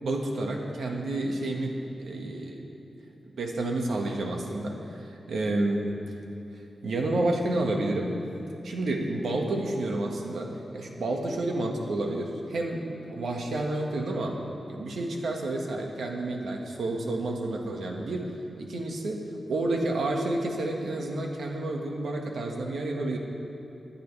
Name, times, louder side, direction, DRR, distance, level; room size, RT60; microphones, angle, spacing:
voice 1, 0.0-2.6 3.4-6.1 6.8-8.1 8.6-14.4 14.7-18.3 18.6-19.2 19.5-23.2, right 2 dB, 85° right, 0 dB, 1.7 m, -30 dB
24.5 x 10.0 x 3.4 m, 3.0 s
wide cardioid pair, 150°, 0 cm